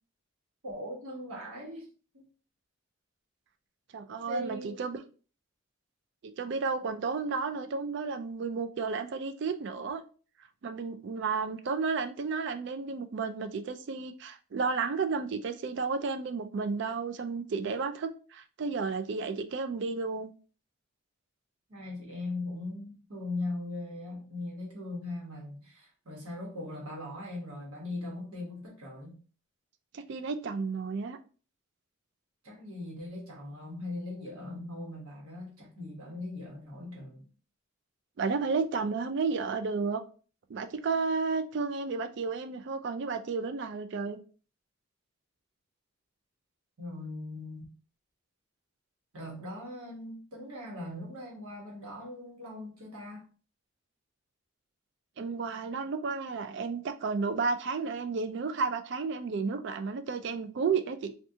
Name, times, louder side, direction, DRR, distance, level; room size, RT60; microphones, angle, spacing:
voice 1, 0.6-1.9 2.1-2.2 4.2-4.8 21.7-29.2 32.4-37.3 46.8-47.7 49.1-53.3, left 2 dB, 85° right, 1.1 m, -40 dB
voice 2, 3.9-5.0 6.2-10.0 10.6-20.3 29.9-31.2 38.2-40.0 40.5-44.2 55.2-61.1, right 4 dB, 55° right, 0.3 m, -32 dB
3.6 x 2.3 x 2.7 m
head